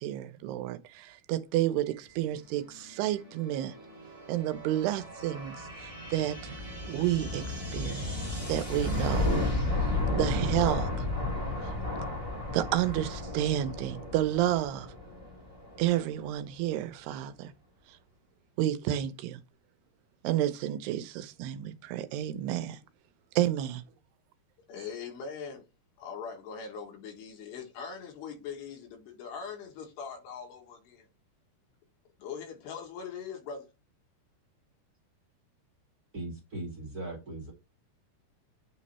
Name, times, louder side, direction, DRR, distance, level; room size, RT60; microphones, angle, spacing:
voice 1, 0.0-3.8 4.3-6.5 6.8-9.3 10.1-11.1 11.6-11.7 12.5-14.9 15.8-17.5 17.9-18.0 18.6-19.4 20.2-22.8 23.4-23.8, right 13 dB, 80° right, 2.7 m, -30 dB
sound 1, 2.7-16.2, left 2 dB, 20° left, 1.0 m, -33 dB
voice 2, 24.7-25.7 26.0-31.1 32.2-33.7, left 6 dB, 85° left, 3.7 m, -41 dB
voice 3, 36.1-37.5, right 2 dB, 45° right, 1.2 m, -39 dB
9.1 x 3.2 x 4.2 m
omnidirectional pair, 4.7 m